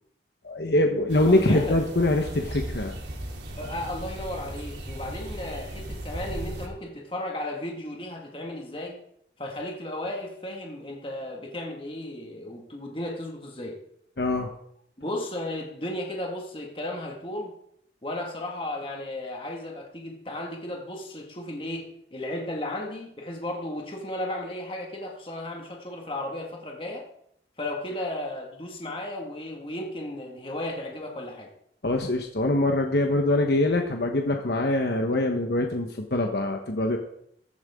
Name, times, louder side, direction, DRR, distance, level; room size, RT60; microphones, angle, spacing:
voice 1, 0.4-3.0 14.2-14.5 31.8-37.0, left 1 dB, 70° left, 3 dB, 1.2 m, -24 dB
sound 1, 1.1-6.7, right 1 dB, 85° right, 3.0 m, -36 dB
voice 2, 1.3-1.8 3.6-9.0 9.4-13.8 15.0-17.5 18.0-27.1 27.6-31.5, left 1 dB, 30° left, 0 dB, 1.9 m, -34 dB
15.0 x 13.0 x 3.7 m, 0.72 s
head